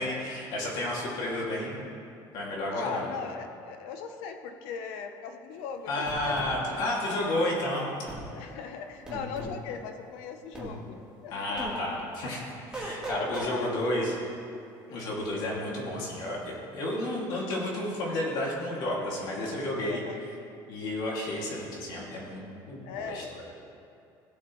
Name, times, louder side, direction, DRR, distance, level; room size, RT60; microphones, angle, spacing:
voice 1, 0.0-1.9 2.3-3.0 5.9-7.9 11.3-12.4 12.7-14.1 14.9-20.0 20.7-23.2, left 1 dB, 50° left, -3 dB, 2.4 m, -31 dB
voice 2, 2.7-7.0 8.3-11.6 13.1-14.2 14.9-15.2 19.9-20.2 22.8-23.4, left 6 dB, 90° left, 6 dB, 0.8 m, -39 dB
sound 1, 6.1-6.5 8.1-8.3 9.1-9.6 10.5-10.7 11.6-11.8 12.7-13.5, right 2 dB, 10° right, 1.7 m, -37 dB
17.5 x 8.3 x 3.2 m, 2.6 s
cardioid pair, 165°, 9 cm